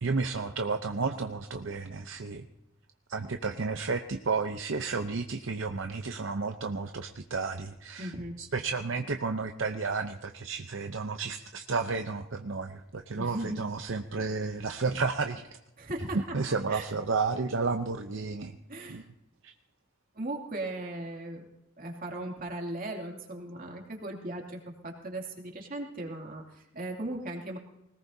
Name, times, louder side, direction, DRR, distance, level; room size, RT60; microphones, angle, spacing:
voice 1, 0.0-2.5 3.1-8.1 8.4-15.4 16.3-18.6 18.9-19.0 19.4-19.5, right 4 dB, 65° right, 6 dB, 0.7 m, -32 dB
voice 2, 8.0-8.4 13.1-13.7 15.8-16.8 18.7-19.0 20.1-21.5 21.8-27.6, right 1 dB, 45° right, 1 dB, 2.6 m, -38 dB
21.0 x 19.0 x 2.8 m, 0.91 s
head